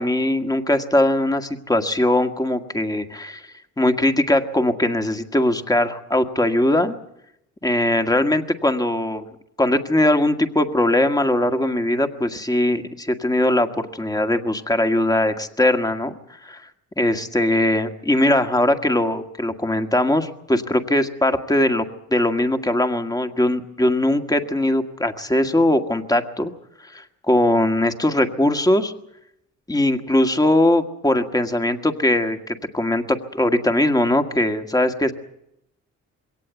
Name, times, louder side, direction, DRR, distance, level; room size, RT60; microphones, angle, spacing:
voice 1, 0.0-3.4 3.8-7.0 7.6-9.3 9.6-16.2 16.4-16.6 17.0-21.9 22.1-26.5 26.8-28.9 29.7-35.1, left 1 dB, 10° left, 7 dB, 1.8 m, -20 dB
22.0 x 17.5 x 8.2 m, 0.82 s
cardioid pair, 90°, 30 cm